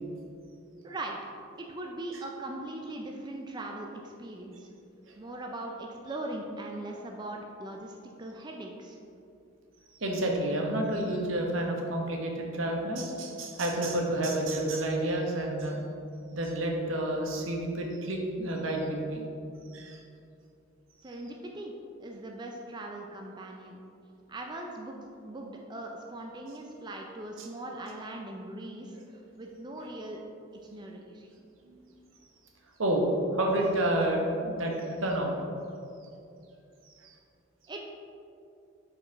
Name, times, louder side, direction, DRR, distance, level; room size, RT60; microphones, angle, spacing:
voice 1, 0.8-1.2 1.6-4.7 5.2-9.0 21.0-21.7 22.0-23.8 24.3-24.9 25.2-29.0 29.4-30.2 30.7-31.3 37.7-37.8, right 1 dB, 20° right, 1 dB, 0.4 m, -40 dB
voice 2, 10.0-15.8 16.3-19.2 19.7-20.0 27.4-27.5 31.6-31.8 32.8-33.1 33.3-34.7 35.0-35.3 37.0-37.1, right 1 dB, 80° right, 0 dB, 1.0 m, -29 dB
4.9 x 4.8 x 4.6 m, 2.6 s
head